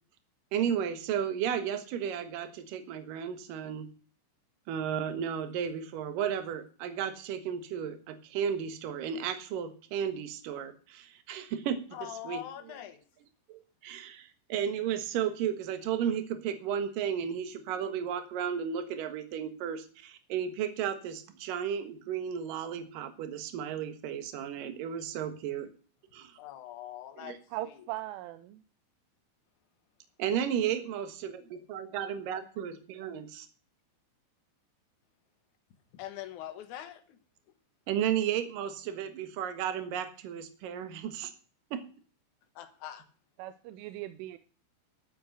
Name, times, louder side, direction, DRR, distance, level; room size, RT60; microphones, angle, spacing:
voice 1, 0.5-3.9 4.7-11.8 12.2-12.4 13.5-25.7 26.1-26.4 27.2-27.4 30.2-33.5 37.9-41.3 41.7-41.8, right 8 dB, 65° right, 2.4 m, -33 dB
voice 2, 11.9-13.0 26.4-27.4 27.6-27.7 35.9-37.2 42.6-43.1, left 12 dB, 75° left, 1.8 m, -43 dB
voice 3, 27.5-28.6 43.4-44.4, right 15 dB, 90° right, 3.2 m, -39 dB
12.5 x 7.9 x 6.5 m
omnidirectional pair, 5.5 m